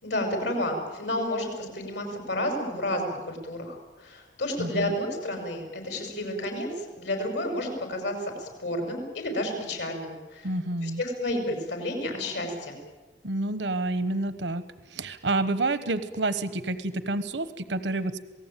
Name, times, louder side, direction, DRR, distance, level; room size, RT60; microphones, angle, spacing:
voice 1, 0.0-10.5 10.8-12.8, left 1 dB, 85° left, 4 dB, 5.9 m, -31 dB
voice 2, 4.6-4.9 10.4-11.0 13.2-14.6 14.9-18.3, right 2 dB, 85° right, 13 dB, 1.0 m, -29 dB
27.5 x 18.5 x 9.0 m, 1.2 s
head